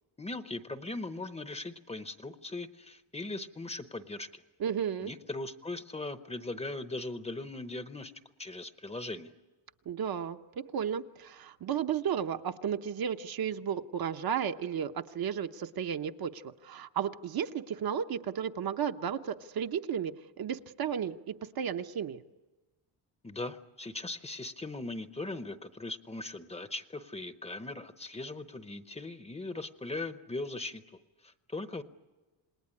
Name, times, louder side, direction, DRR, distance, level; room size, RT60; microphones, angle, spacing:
voice 1, 0.2-4.4 5.0-8.1 8.4-9.3 23.2-30.8 31.2-31.8, left 2 dB, 15° left, 10 dB, 0.8 m, -39 dB
voice 2, 4.6-5.1 9.9-22.2, right 8 dB, 50° right, 7 dB, 0.9 m, -33 dB
27.5 x 20.0 x 9.8 m, 1.2 s
cardioid pair, 160°, 46 cm